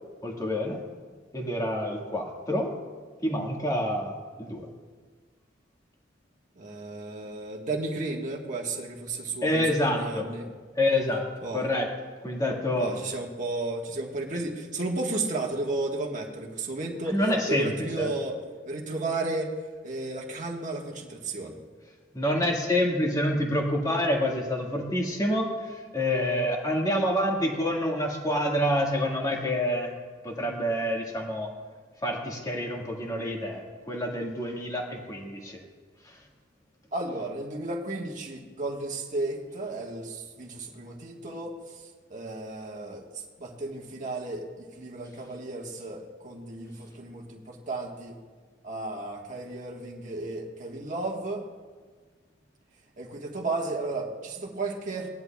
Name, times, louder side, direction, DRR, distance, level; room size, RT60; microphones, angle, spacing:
voice 1, 0.2-0.8 1.3-2.7 3.2-4.7 9.4-10.3 10.7-11.3 11.5-11.9 12.2-12.9 17.1-18.1 22.1-29.9 30.2-31.5 32.0-35.6 36.0-36.2, left 1 dB, 20° left, 0 dB, 1.7 m, -27 dB
voice 2, 6.5-10.5 11.4-11.6 12.8-17.2 17.5-18.4 18.7-19.5 19.8-21.6 36.9-48.2 48.6-51.4 53.0-55.1, right 2 dB, 40° right, -1 dB, 1.4 m, -33 dB
18.5 x 11.0 x 2.3 m, 1.5 s
head